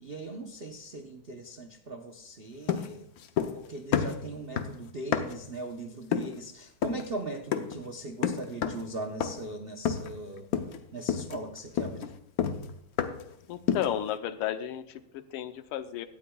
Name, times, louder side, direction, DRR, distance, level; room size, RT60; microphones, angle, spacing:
voice 1, 0.0-3.1 3.5-10.5 10.9-12.1, right 2 dB, 90° right, 4 dB, 0.5 m, -39 dB
sound 1, 2.7-3.7 3.9-5.5 6.1-6.4 6.8-7.1 7.5-7.8 8.2-8.9 9.2-9.5 9.9-10.2 10.5-10.8 11.1-13.3 13.7-14.0, left 8 dB, 65° left, 0.9 m, -30 dB
voice 2, 13.5-16.1, left 11 dB, 80° left, 10 dB, 1.6 m, -33 dB
17.5 x 12.5 x 2.3 m, 0.73 s
omnidirectional pair, 2.4 m